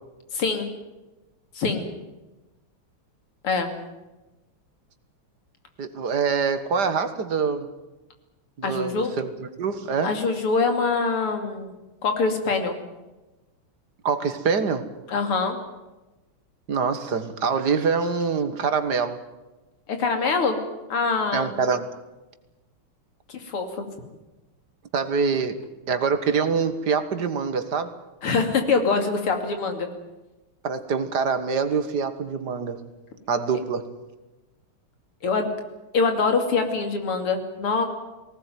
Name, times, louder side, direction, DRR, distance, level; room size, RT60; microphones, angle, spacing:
voice 1, 0.3-0.7 1.6-1.9 3.4-3.7 8.6-9.1 10.0-11.7 12.0-12.8 15.1-15.6 19.9-20.6 20.9-21.5 23.3-23.9 28.2-29.9 35.2-35.5 35.9-37.8, left 4 dB, 85° left, 6 dB, 3.5 m, -24 dB
voice 2, 5.8-7.7 8.6-10.1 14.0-14.9 16.7-19.2 21.3-21.8 24.9-27.9 30.6-32.8 33.3-33.9, right 5 dB, 50° right, 10 dB, 2.0 m, -25 dB
20.0 x 18.0 x 9.4 m, 1.1 s
omnidirectional pair, 2.4 m